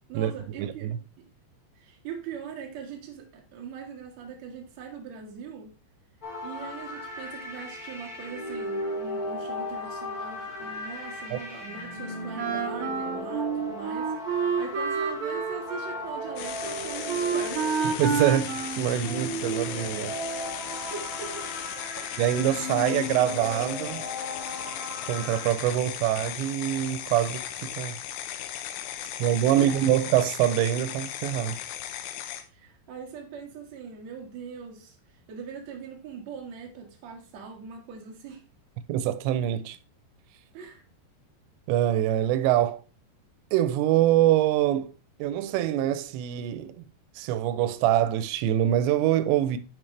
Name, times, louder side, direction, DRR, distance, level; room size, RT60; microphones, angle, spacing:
voice 1, 0.1-1.0 1.8-5.8 6.4-18.0 20.8-21.5 22.0-22.1 29.0-30.0 32.5-35.0 35.3-38.4 40.5-40.8, right 6 dB, 50° right, 2.3 m, -41 dB
voice 2, 0.6-1.0 11.3-11.4 18.0-20.2 22.2-24.0 25.1-28.0 29.2-31.6 38.9-39.8 41.7-42.8 43.5-44.9 45.2-46.8 47.2-49.6, right 12 dB, 90° right, 2.9 m, -24 dB
sound 1, 6.2-25.5, left 1 dB, 30° left, 1.8 m, -36 dB
Wind instrument woodwind instrument, 12.3-19.6, right 5 dB, 75° right, 1.6 m, -30 dB
sound 2, 16.4-32.4, left 10 dB, 80° left, 2.9 m, -37 dB
11.0 x 5.0 x 3.2 m
omnidirectional pair, 5.0 m